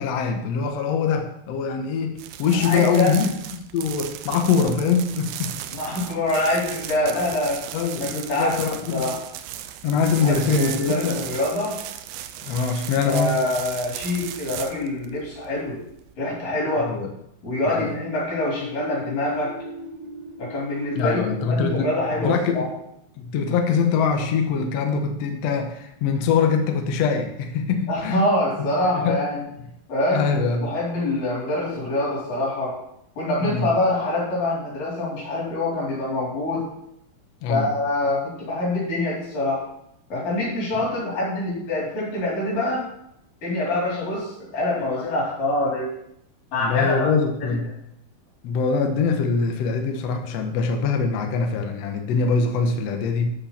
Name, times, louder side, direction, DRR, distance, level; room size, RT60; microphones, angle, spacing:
voice 1, 0.0-3.2 3.7-5.5 7.7-9.1 9.8-11.2 12.4-13.3 16.8-17.1 17.6-17.9 20.9-21.9 22.2-22.7 23.2-28.2 28.6-28.7 28.9-29.2 30.1-30.7 33.4-33.7 37.4-37.7 46.6-47.7 48.4-53.3, left 5 dB, 85° left, 4 dB, 1.4 m, -23 dB
sound 1, 2.2-16.1, right 12 dB, 80° right, 2.3 m, -36 dB
voice 2, 2.6-3.1 5.7-7.6 7.9-8.6 8.9-9.2 10.1-11.8 13.0-15.8 16.2-16.9 17.4-19.6 20.4-22.7 27.9-29.4 29.9-32.8 33.2-36.6 37.5-39.6 40.1-42.8 43.4-45.9 46.5-47.1 47.4-47.5, left 1 dB, 55° left, -5 dB, 5.5 m, -25 dB
sound 2, 17.5-23.2, left 2 dB, 60° right, 2.0 m, -38 dB
13.0 x 5.9 x 4.3 m, 0.78 s
omnidirectional pair, 4.6 m